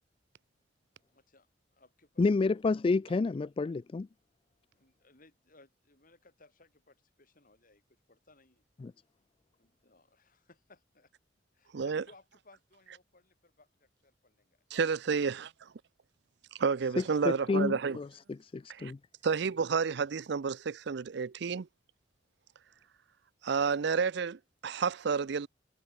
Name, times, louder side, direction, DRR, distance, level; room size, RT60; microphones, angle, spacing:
voice 1, 1.1-2.6 4.7-8.6 9.6-11.1 11.5-15.2, left 2 dB, 50° left, 5.8 m, -62 dB
voice 2, 2.2-4.1 8.8-8.9 17.2-18.1 18.4-19.0, left 3 dB, 30° left, 0.3 m, -29 dB
voice 3, 11.7-12.0 14.7-15.5 16.6-18.0 18.7-18.9 19.2-21.7 23.4-25.5, right 5 dB, 65° right, 0.5 m, -30 dB
head